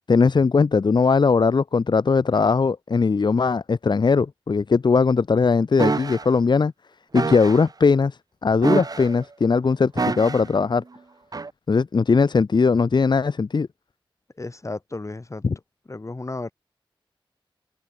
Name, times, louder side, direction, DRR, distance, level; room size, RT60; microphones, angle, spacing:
voice 1, 0.1-6.7 7.1-10.8 11.7-13.7 15.4-15.5, left 4 dB, 55° left, 0.9 m, -19 dB
sound 1, 5.8-6.2 7.1-7.6 8.6-9.2 10.0-10.5 11.3-11.5, right 3 dB, 45° right, 1.0 m, -26 dB
voice 2, 14.4-15.5 15.9-16.5, left 2 dB, 35° left, 4.1 m, -33 dB
wide cardioid pair, 85°, 9 cm